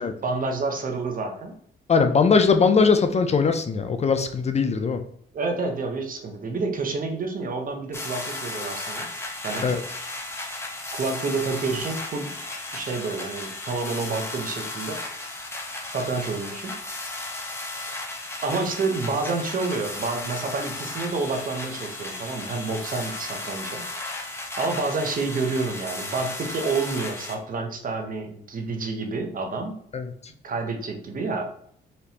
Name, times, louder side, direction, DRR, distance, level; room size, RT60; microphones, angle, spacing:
voice 1, 0.0-1.5 4.8-4.9 5.3-9.1 9.4-9.7 10.9-12.3 12.7-15.0 15.9-16.8 18.4-23.8 24.6-29.8 30.4-31.5, right 3 dB, 45° right, 4 dB, 0.8 m, -29 dB
voice 2, 1.9-5.0 9.6-9.8 29.9-30.1, left 5 dB, 35° left, 8 dB, 0.4 m, -20 dB
sound 1, 7.9-27.3, left 2 dB, 10° left, 0.9 m, -35 dB
4.2 x 3.0 x 2.8 m, 0.68 s
cardioid pair, 90°, 20 cm